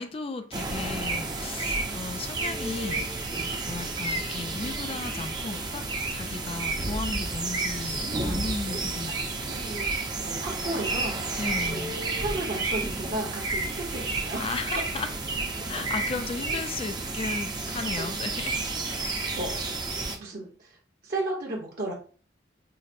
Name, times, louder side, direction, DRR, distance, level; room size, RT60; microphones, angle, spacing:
voice 1, 0.0-3.0 3.7-5.8 6.1-9.2 11.4-12.0 14.4-15.1 15.7-18.5, left 3 dB, 30° left, 0.4 m, -35 dB
sound 1, 0.5-20.2, right 3 dB, 20° right, 0.5 m, -31 dB
voice 2, 7.9-8.8 9.4-11.8 12.2-14.4 18.9-20.7 21.0-21.9, right 2 dB, 55° right, 0.9 m, -35 dB
5.6 x 2.0 x 2.5 m
head